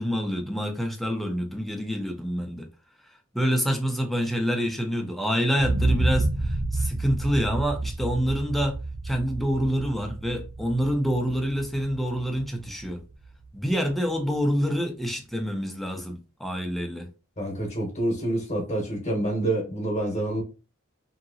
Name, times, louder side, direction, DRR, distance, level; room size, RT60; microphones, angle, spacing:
voice 1, 0.0-2.7 3.3-13.0 13.5-17.1, equal, ahead, 0.5 m, -27 dB
sound 1, 5.6-13.5 13.9-14.0, right 2 dB, 80° right, 1.0 m, -30 dB
voice 2, 17.4-20.4, right 1 dB, 30° left, 1.0 m, -27 dB
2.8 x 2.8 x 2.6 m
head